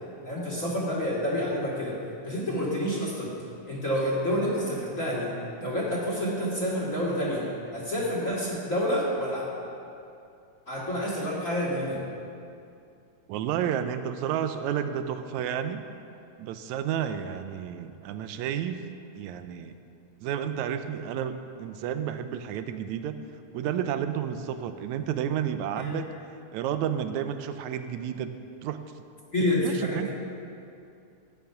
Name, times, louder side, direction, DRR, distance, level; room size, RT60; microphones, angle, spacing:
voice 1, 0.2-2.0 2.2-3.3 3.7-5.3 5.6-7.5 7.7-9.4 10.7-12.0 25.7-26.0 29.3-30.1, equal, 30° left, -5 dB, 2.1 m, -28 dB
voice 2, 13.3-15.8 16.4-18.9 19.2-19.7 20.2-23.2 23.5-26.1 26.5-28.3 28.6-28.8 29.6-30.1, right 9 dB, 80° right, 9 dB, 1.9 m, -31 dB
13.5 x 9.3 x 5.7 m, 2.5 s
omnidirectional pair, 3.5 m